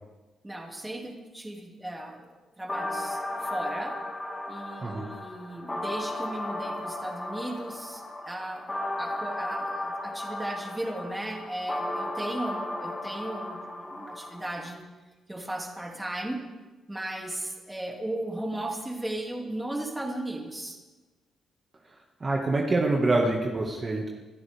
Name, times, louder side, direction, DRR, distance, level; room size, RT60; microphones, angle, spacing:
voice 1, 0.4-4.0 4.5-14.8 15.3-16.4 16.9-20.8, right 1 dB, 10° right, 0 dB, 2.7 m, -36 dB
sound 1, 2.7-14.7, left 1 dB, 15° left, 2.0 m, -35 dB
voice 2, 22.2-24.1, right 2 dB, 30° right, -1 dB, 1.9 m, -25 dB
26.5 x 14.5 x 3.6 m, 1.2 s
cardioid pair, 120°, 0 cm